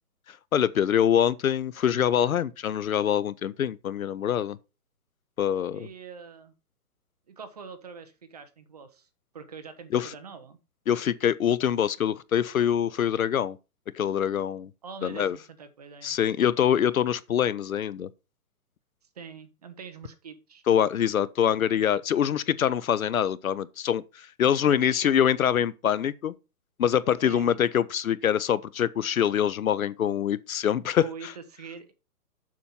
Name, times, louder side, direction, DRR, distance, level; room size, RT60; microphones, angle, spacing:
voice 1, 0.3-4.6 5.4-5.9 9.9-10.1 10.9-13.6 13.9-14.7 15.0-15.4 16.0-18.1 20.7-26.4 26.8-31.3, left 9 dB, 60° left, 0.7 m, -25 dB
voice 2, 5.7-6.5 7.3-9.1 9.3-10.6 14.8-16.2 19.1-20.6 24.6-25.1 27.2-27.6 31.0-31.9, right 6 dB, 25° right, 0.8 m, -44 dB
7.4 x 6.1 x 5.4 m
hypercardioid pair, 165°, 47 cm